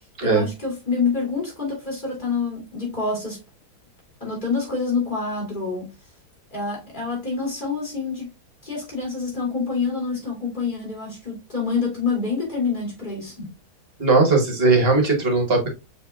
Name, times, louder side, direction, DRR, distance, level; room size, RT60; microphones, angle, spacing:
voice 1, 0.0-3.4 4.2-5.9 6.5-8.3 8.6-13.5, left 4 dB, 30° left, 2.8 m, -27 dB
voice 2, 14.0-15.7, right 3 dB, 40° right, 1.3 m, -18 dB
6.8 x 3.2 x 2.3 m
omnidirectional pair, 1.8 m